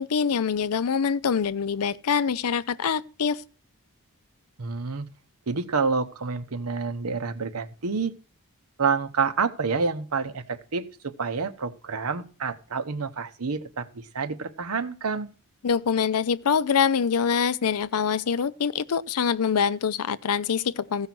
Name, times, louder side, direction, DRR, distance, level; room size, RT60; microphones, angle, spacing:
voice 1, 0.0-3.4 15.6-21.1, left 6 dB, 85° left, 0.5 m, -25 dB
voice 2, 4.6-5.1 5.5-8.1 8.8-15.3, right 5 dB, 85° right, 0.9 m, -28 dB
15.0 x 5.6 x 6.0 m
head